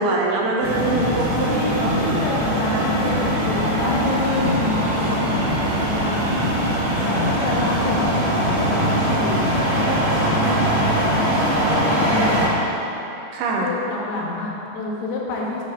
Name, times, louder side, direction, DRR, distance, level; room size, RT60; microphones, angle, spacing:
voice 1, 0.0-2.2 2.7-2.9 13.3-13.7, right 2 dB, 85° right, -1 dB, 2.6 m, -23 dB
sound 1, 0.6-12.5, equal, 55° right, 1.5 m, -21 dB
voice 2, 1.5-6.3 7.0-9.4 9.8-12.5 13.6-15.6, left 3 dB, 80° left, -3 dB, 2.9 m, -28 dB
7.9 x 3.3 x 6.2 m, 3.0 s
omnidirectional pair, 4.8 m